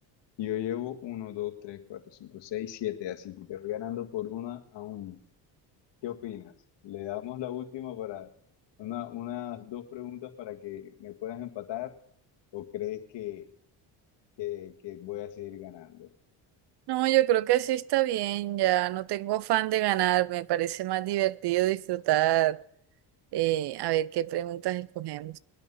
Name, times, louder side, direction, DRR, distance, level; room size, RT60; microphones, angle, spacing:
voice 1, 0.4-5.2 6.0-6.5 6.8-8.3 8.8-12.0 12.5-13.5 14.4-16.1, left 12 dB, 65° left, 1.8 m, -37 dB
voice 2, 16.9-22.6 23.3-25.4, right 14 dB, 60° right, 0.6 m, -26 dB
21.0 x 9.2 x 5.6 m
cardioid pair, 95°, 46 cm